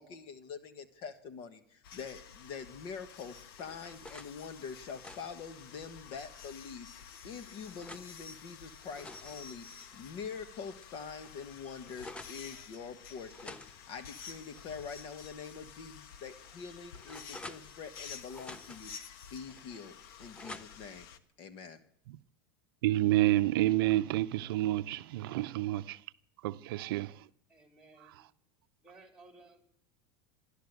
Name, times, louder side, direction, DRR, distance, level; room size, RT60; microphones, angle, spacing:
voice 1, 0.0-18.9 19.3-21.1 21.4-21.8, left 6 dB, 50° left, 1.5 m, -45 dB
sound 1, 1.8-21.2, left 7 dB, 75° left, 1.2 m, -51 dB
sound 2, 3.1-4.3 4.8-6.4 7.0-8.1 8.7-10.4 10.8-10.9 11.2-12.4 13.3-15.1 15.5-15.6 16.2-18.0 18.3-19.0 19.5-21.0, left 2 dB, 10° left, 0.7 m, -51 dB
voice 2, 22.8-26.0 26.4-27.3, right 15 dB, 80° right, 0.5 m, -29 dB
voice 3, 27.5-28.2 28.8-29.7, right 3 dB, 5° right, 3.3 m, -57 dB
14.0 x 11.5 x 8.1 m
supercardioid pair, 135°, 12 cm